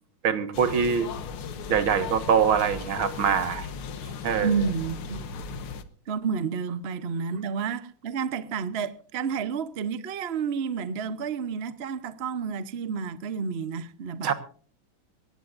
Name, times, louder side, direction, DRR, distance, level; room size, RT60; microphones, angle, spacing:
voice 1, 0.2-1.1 1.7-3.7 4.2-4.6 14.2-14.3, right 7 dB, 70° right, 2.3 m, -24 dB
sound 1, 0.5-5.8, left 5 dB, 85° left, 2.1 m, -36 dB
voice 2, 4.4-5.3 6.1-14.3, right 6 dB, 50° right, 0.8 m, -30 dB
22.0 x 17.5 x 2.6 m
omnidirectional pair, 2.3 m